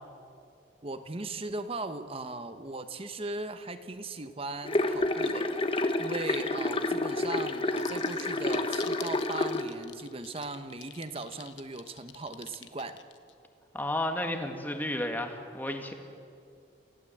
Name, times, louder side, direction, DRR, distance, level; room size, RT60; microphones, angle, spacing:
voice 1, 0.8-5.7 6.0-13.0, right 2 dB, 30° right, 10 dB, 1.0 m, -38 dB
sound 1, 4.6-9.6, left 2 dB, 30° left, 1.2 m, -29 dB
sound 2, 7.8-13.3, left 12 dB, 80° left, 1.1 m, -46 dB
voice 2, 13.7-15.9, left 1 dB, 10° left, 4 dB, 1.7 m, -32 dB
28.5 x 16.0 x 7.9 m, 2.5 s
head